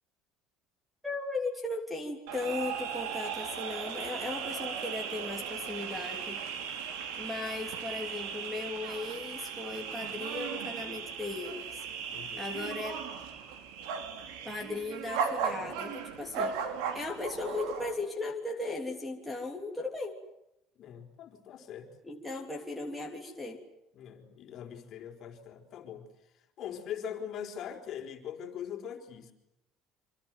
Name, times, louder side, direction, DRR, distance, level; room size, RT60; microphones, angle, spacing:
voice 1, 1.0-6.4 7.2-11.8 12.4-13.0 14.4-16.6 16.9-20.2 22.0-23.6, left 3 dB, ahead, -1 dB, 3.2 m, -37 dB
sound 1, 2.3-18.0, right 7 dB, 85° right, 4.4 m, -37 dB
voice 2, 12.1-12.6 20.8-21.9 23.9-26.1 26.6-29.3, left 9 dB, 40° left, 4 dB, 4.9 m, -42 dB
27.5 x 26.0 x 7.9 m, 0.83 s
cardioid pair, 160°, 0 cm